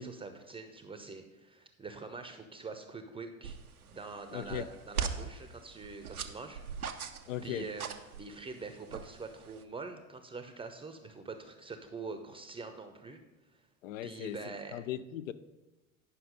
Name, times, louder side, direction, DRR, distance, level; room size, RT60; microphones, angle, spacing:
voice 1, 0.0-3.6 3.9-6.6 6.9-7.1 7.4-7.9 8.2-13.2 13.5-13.6 14.0-14.8, right 4 dB, 15° right, 0.7 m, -44 dB
sound 1, 3.4-9.6, right 6 dB, 85° right, 0.7 m, -41 dB
voice 2, 4.3-4.7 7.3-7.7 13.8-15.3, left 11 dB, 65° left, 0.6 m, -38 dB
9.9 x 5.7 x 5.3 m
figure-of-eight pair, 75°, 43 cm